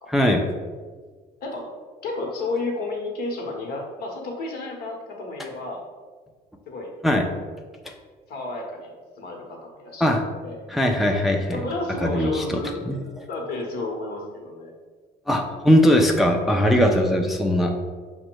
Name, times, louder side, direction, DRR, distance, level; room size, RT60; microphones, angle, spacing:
voice 1, 0.1-0.4 7.0-7.3 7.9-8.0 10.0-10.2 10.7-11.6 12.0-12.6 12.9-13.0 15.3-17.7, equal, ahead, 2 dB, 0.4 m, -20 dB
voice 2, 2.0-5.8 6.7-6.9 8.3-10.1 10.4-10.6 11.5-14.7 16.8-17.0, left 2 dB, 65° left, 1 dB, 1.0 m, -32 dB
5.0 x 2.2 x 4.4 m, 1.5 s
cardioid pair, 110°, 17 cm